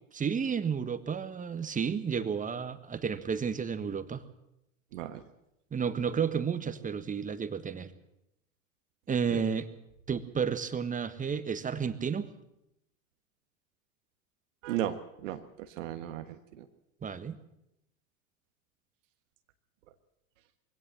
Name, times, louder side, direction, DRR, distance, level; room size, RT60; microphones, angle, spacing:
voice 1, 0.1-4.2 5.7-7.9 9.1-9.7 10.1-12.3 17.0-17.4, right 6 dB, 20° right, 12 dB, 1.5 m, -32 dB
voice 2, 4.9-5.2 9.3-9.4 14.6-16.6, right 12 dB, 65° right, 8 dB, 1.4 m, -36 dB
23.0 x 17.0 x 7.6 m, 0.85 s
hypercardioid pair, 90°, 41 cm